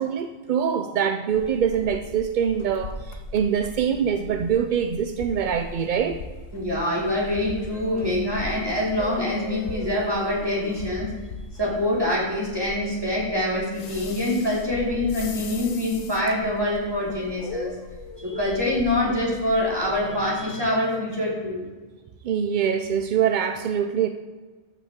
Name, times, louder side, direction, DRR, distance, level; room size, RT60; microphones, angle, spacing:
voice 1, 0.0-6.2 22.2-24.1, right 8 dB, 65° right, 7 dB, 0.4 m, -24 dB
sound 1, 1.3-20.4, left 3 dB, 90° left, 1.2 m, -39 dB
voice 2, 6.5-11.1 11.5-17.7 18.2-21.7, left 1 dB, 20° right, -6 dB, 2.8 m, -25 dB
13.0 x 5.7 x 3.6 m, 1.3 s
omnidirectional pair, 1.3 m